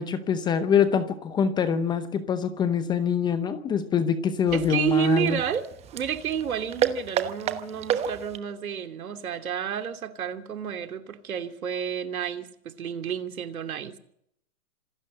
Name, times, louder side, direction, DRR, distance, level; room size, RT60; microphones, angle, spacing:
voice 1, 0.0-5.4, left 7 dB, 10° left, 0.7 m, -24 dB
sound 1, 4.5-8.5, right 9 dB, 15° right, 1.1 m, -31 dB
voice 2, 4.5-14.0, right 8 dB, 75° right, 2.8 m, -30 dB
26.5 x 12.5 x 7.7 m
hypercardioid pair, 145°, 42 cm